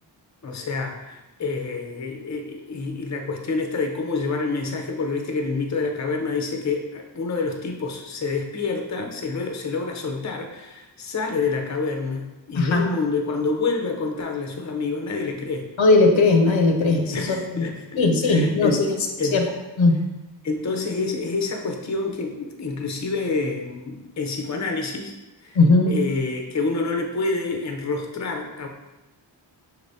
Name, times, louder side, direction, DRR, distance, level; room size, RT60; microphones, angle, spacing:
voice 1, 0.4-15.7 17.1-18.8 19.2-19.4 20.4-25.1 25.4-25.6 25.9-28.7, left 4 dB, 40° left, 3 dB, 0.6 m, -27 dB
voice 2, 12.5-12.9 15.8-17.7 18.0-18.9 19.3-19.4 19.8-19.9 25.6-25.9, left 3 dB, 85° left, 3 dB, 0.7 m, -18 dB
5.8 x 3.4 x 2.7 m, 1.0 s
wide cardioid pair, 95°, 46 cm